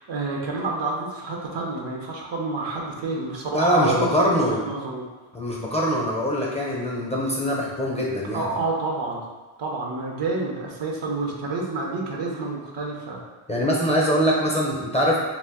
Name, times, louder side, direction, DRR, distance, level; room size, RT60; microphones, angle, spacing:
voice 1, 0.0-5.1 8.3-9.2 9.6-13.2, right 3 dB, 60° right, -1 dB, 0.7 m, -28 dB
voice 2, 3.5-4.6 5.3-8.5 13.5-15.2, equal, 15° left, -4 dB, 0.6 m, -23 dB
2.4 x 2.1 x 3.5 m, 1.3 s
cardioid pair, 55°, 48 cm